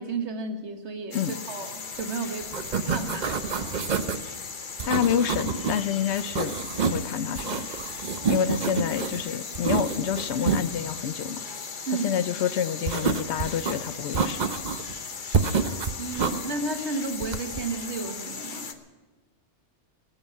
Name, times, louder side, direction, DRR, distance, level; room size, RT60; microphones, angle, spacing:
voice 1, 0.0-2.5 2.8-3.8 11.9-12.2 16.0-18.7, right 3 dB, 70° right, 6 dB, 1.6 m, -33 dB
sound 1, 1.1-18.7, left 5 dB, 45° left, 1.0 m, -38 dB
sound 2, 2.0-2.2 2.4-4.2 4.8-5.8 6.1-7.0 7.3-9.2 9.5-10.6 12.9-13.7 14.1-14.9 15.3-16.4 17.2-17.6, right 5 dB, 45° right, 0.7 m, -28 dB
voice 2, 4.9-6.6 6.8-7.6 8.3-11.5 12.0-14.4, left 8 dB, 70° left, 14 dB, 0.9 m, -28 dB
18.5 x 7.1 x 9.3 m, 1.3 s
omnidirectional pair, 1.2 m